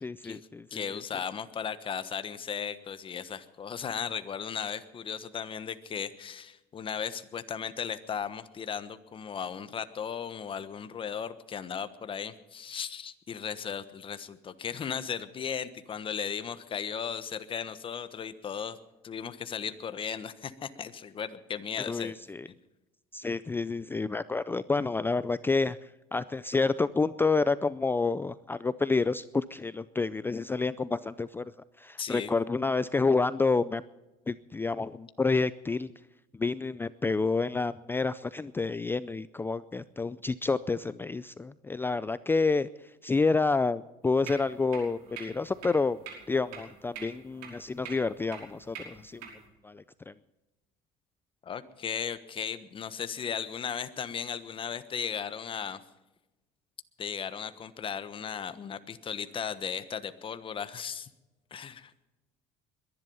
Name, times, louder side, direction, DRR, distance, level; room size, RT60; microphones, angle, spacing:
voice 1, 0.0-1.0 21.9-22.5 23.1-31.5 31.8-33.8 34.3-35.9 36.3-42.7 43.0-46.0 46.3-49.3 49.6-50.1, left 3 dB, 15° left, 15 dB, 0.4 m, -29 dB
voice 2, 0.7-18.8 19.0-22.1 22.5-22.6 32.0-32.3 51.4-55.8 57.0-61.1 61.5-61.9, left 7 dB, 30° left, 12 dB, 1.2 m, -36 dB
sound 1, 44.0-49.5, right 6 dB, 85° right, 5.4 m, -46 dB
22.0 x 11.0 x 5.6 m, 1.0 s
cardioid pair, 115°, 17 cm